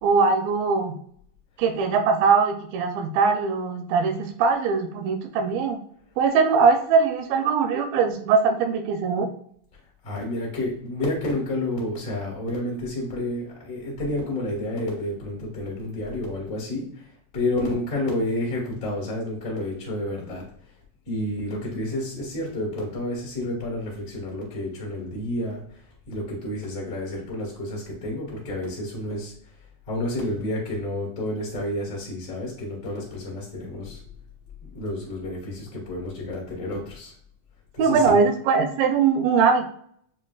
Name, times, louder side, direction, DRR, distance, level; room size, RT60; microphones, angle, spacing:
voice 1, 0.0-1.0 1.6-5.8 6.2-9.3 37.8-39.7, right 5 dB, 85° right, 5 dB, 2.3 m, -21 dB
voice 2, 10.0-17.0 17.3-20.4 21.1-25.6 26.1-29.3 29.9-34.0 34.7-37.1 37.7-38.2, left 1 dB, 50° left, -4 dB, 0.9 m, -30 dB
6.9 x 2.6 x 2.3 m, 0.62 s
omnidirectional pair, 4.0 m